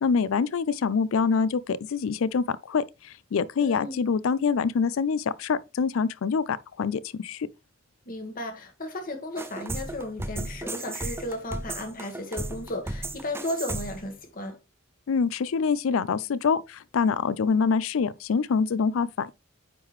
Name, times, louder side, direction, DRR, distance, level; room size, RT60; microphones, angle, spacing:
voice 1, 0.0-7.5 15.1-19.4, left 5 dB, 80° left, 0.4 m, -25 dB
voice 2, 3.6-4.1 8.1-14.6, left 1 dB, 45° left, 1.5 m, -34 dB
sound 1, 9.4-14.1, right 2 dB, 10° right, 0.4 m, -35 dB
9.1 x 3.7 x 3.0 m
head